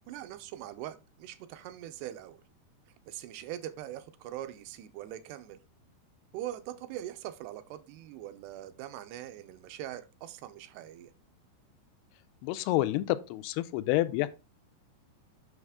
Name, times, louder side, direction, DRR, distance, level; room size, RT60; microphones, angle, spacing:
voice 1, 0.1-2.4 3.1-5.6 6.3-11.1, right 13 dB, 85° right, 2.8 m, -42 dB
voice 2, 12.4-14.3, left 16 dB, 85° left, 2.6 m, -28 dB
8.0 x 6.4 x 3.5 m
omnidirectional pair, 4.6 m